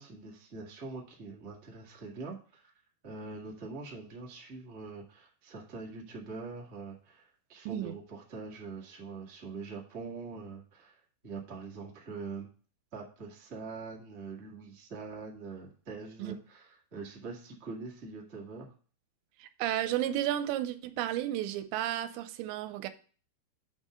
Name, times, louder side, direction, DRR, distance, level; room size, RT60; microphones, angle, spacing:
voice 1, 0.0-2.7 3.0-12.5 12.9-18.7, right 4 dB, 50° right, 0.8 m, -44 dB
voice 2, 19.4-22.9, right 12 dB, 90° right, 2.9 m, -32 dB
8.6 x 3.7 x 6.6 m
omnidirectional pair, 5.1 m